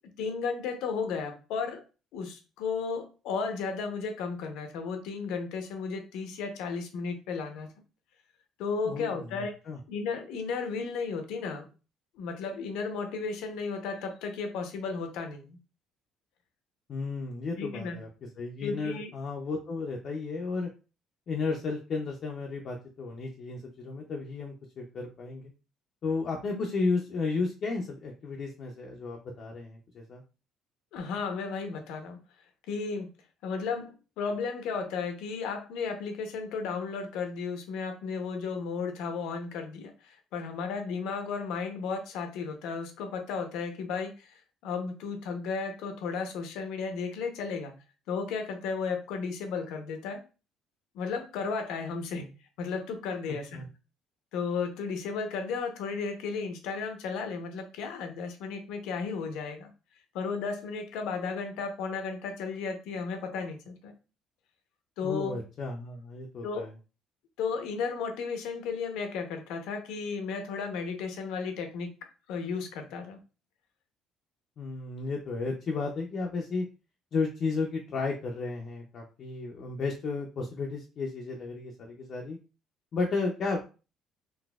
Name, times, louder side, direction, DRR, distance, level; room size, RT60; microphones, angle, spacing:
voice 1, 0.2-1.8 2.1-7.7 8.6-9.5 9.9-11.7 12.2-15.6 17.6-18.0 18.6-19.1 30.9-32.2 32.7-33.1 33.4-47.7 48.1-50.2 50.9-52.3 52.6-53.7 54.3-59.7 60.1-63.9 65.0-65.4 66.4-66.6 67.4-71.9 72.3-73.2, left 5 dB, 80° left, 6 dB, 0.7 m, -34 dB
voice 2, 8.8-9.8 16.9-20.7 21.3-25.5 26.0-30.2 53.2-53.7 65.0-66.7 74.6-76.7 77.1-82.4 82.9-83.6, left 4 dB, 40° left, 0 dB, 0.4 m, -33 dB
3.9 x 2.5 x 2.3 m, 0.33 s
cardioid pair, 170°, 0 cm